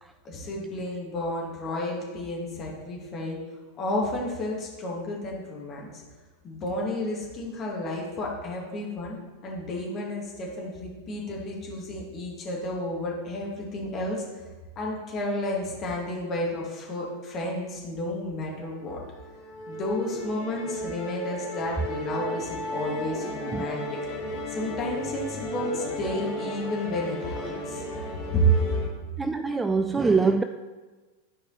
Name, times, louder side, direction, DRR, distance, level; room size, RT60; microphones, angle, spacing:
voice 1, 0.3-3.4 3.8-5.9 6.4-9.2 9.4-14.2 14.8-19.0 19.7-24.0 24.5-27.8 28.3-28.7, equal, 30° left, -3 dB, 2.2 m, -31 dB
Musical instrument, 18.8-28.9, equal, 45° left, 1.6 m, -35 dB
voice 2, 29.2-30.4, right 4 dB, 10° right, 8 dB, 0.3 m, -24 dB
12.0 x 4.8 x 4.2 m, 1.3 s
figure-of-eight pair, 90°, 0 cm